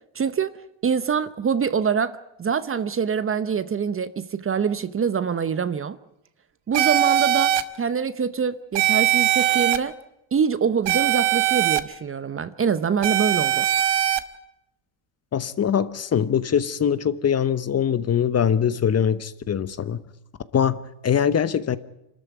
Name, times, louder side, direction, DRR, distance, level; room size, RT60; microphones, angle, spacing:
voice 1, 0.1-0.5 0.8-6.0 6.7-9.9 10.3-13.7, right 6 dB, 25° right, 0.9 m, -25 dB
sound 1, 6.7-7.6 8.7-9.8 10.9-11.8 13.0-14.2, right 12 dB, 55° right, 1.5 m, -20 dB
voice 2, 15.3-20.0 20.5-21.8, left 8 dB, 30° left, 1.0 m, -22 dB
25.5 x 13.5 x 9.4 m
cardioid pair, 110°, 49 cm